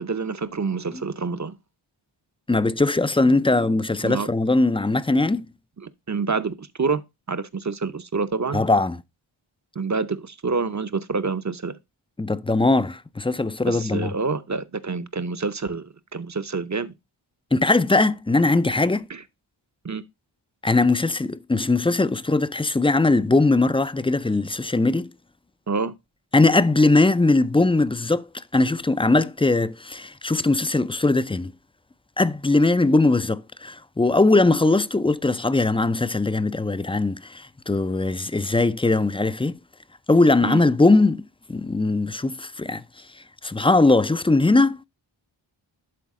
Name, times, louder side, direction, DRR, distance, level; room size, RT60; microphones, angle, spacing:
voice 1, 0.0-1.5 4.0-4.3 5.8-7.0 7.3-8.6 9.8-11.7 13.7-16.9 19.8-20.0 25.7-25.9 40.4-40.6, right 4 dB, 35° right, 0.7 m, -27 dB
voice 2, 2.5-5.5 8.5-9.0 12.2-14.1 17.5-19.1 20.6-25.1 26.3-31.5 32.2-39.6 40.1-43.1 43.4-44.8, left 2 dB, 15° left, 0.3 m, -20 dB
11.5 x 3.9 x 3.6 m
wide cardioid pair, 45°, 50 cm